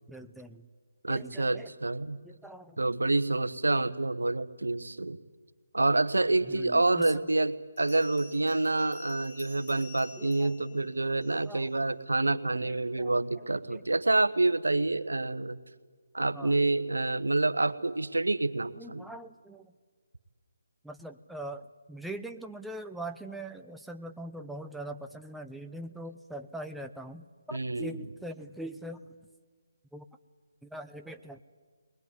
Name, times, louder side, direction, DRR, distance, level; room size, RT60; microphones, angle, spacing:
voice 1, 0.1-0.7 1.1-1.7 2.2-2.9 6.5-7.1 10.2-10.9 11.2-12.0 12.3-13.8 16.3-16.6 18.7-19.7 20.8-29.1 29.9-30.1 30.6-31.4, right 1 dB, ahead, 6 dB, 0.6 m, -43 dB
voice 2, 1.0-2.2 2.8-5.2 5.7-15.6 16.1-19.0 27.5-27.9, right 2 dB, 90° right, 12 dB, 1.2 m, -27 dB
Bell, 7.8-11.6, left 5 dB, 30° left, 7.5 m, -51 dB
21.0 x 20.5 x 9.7 m, 1.5 s
figure-of-eight pair, 155°, 0 cm